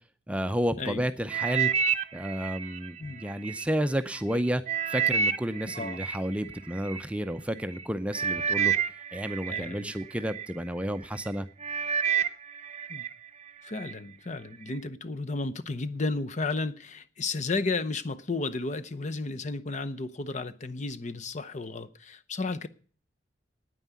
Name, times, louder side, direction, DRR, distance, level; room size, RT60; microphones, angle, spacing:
voice 1, 0.3-1.7 2.1-4.6 4.9-8.7 9.1-11.5, equal, 5° right, 0.6 m, -31 dB
sound 1, 1.3-3.6 4.2-7.0 7.7-7.8 8.1-10.5 11.0-11.3 11.6-13.1 13.5-13.9 14.5-14.6, right 7 dB, 40° right, 0.8 m, -29 dB
voice 2, 9.5-9.9 12.9-13.1 13.6-22.7, left 3 dB, 40° left, 0.8 m, -33 dB
9.4 x 9.3 x 9.5 m
head